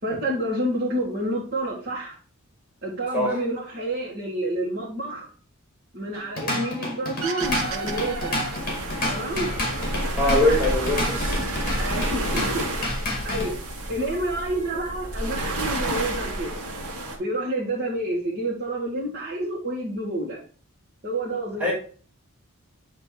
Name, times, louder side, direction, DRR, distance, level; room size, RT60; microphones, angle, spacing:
voice 1, 0.0-2.2 2.8-5.3 5.9-8.3 9.1-9.5 10.2-10.8 11.8-12.4 13.1-13.5 13.9-16.6 17.2-20.4 21.0-21.7, right 1 dB, 45° right, 1.7 m, -29 dB
Drum kit / Drum, 6.1-13.5, left 1 dB, 40° left, 2.2 m, -30 dB
sound 1, 7.2-9.6 9.9-10.7 11.0-12.6, right 4 dB, 70° right, 1.0 m, -35 dB
sound 2, 7.4-17.2, right 1 dB, 85° right, 1.5 m, -30 dB
voice 2, 10.1-11.4 21.6-21.7, left 1 dB, 5° right, 2.6 m, -22 dB
8.4 x 3.2 x 4.7 m
head